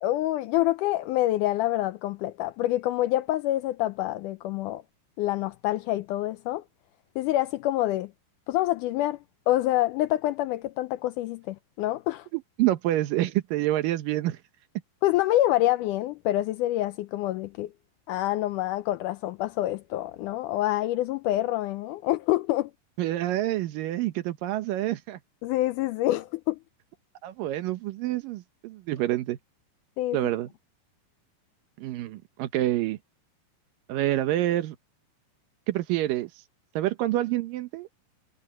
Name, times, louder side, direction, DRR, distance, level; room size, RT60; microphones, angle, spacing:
voice 1, 0.0-4.8 5.2-6.6 7.2-8.1 8.5-9.2 9.5-12.3 15.0-17.7 18.1-22.7 25.4-26.6 30.0-30.2, left 15 dB, 80° left, 1.9 m, -26 dB
voice 2, 12.3-14.4 23.0-25.2 27.2-29.4 30.1-30.5 31.8-33.0 33.9-34.8 35.7-36.3 36.8-37.9, right 15 dB, 75° right, 2.6 m, -27 dB
omnidirectional pair, 4.1 m